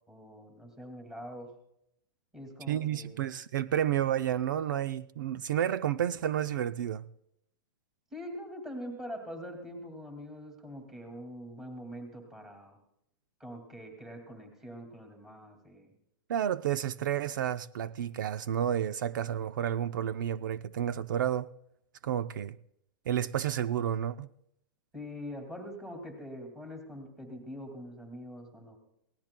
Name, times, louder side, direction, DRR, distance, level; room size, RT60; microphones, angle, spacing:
voice 1, 0.1-1.5 2.3-3.2 8.1-12.8 13.4-15.9 24.9-28.8, equal, 5° right, 2.2 m, -44 dB
voice 2, 2.7-7.0 16.3-21.5 22.0-22.6 23.1-24.3, right 10 dB, 60° right, 0.5 m, -31 dB
24.0 x 18.0 x 2.2 m
supercardioid pair, 170°, 12 cm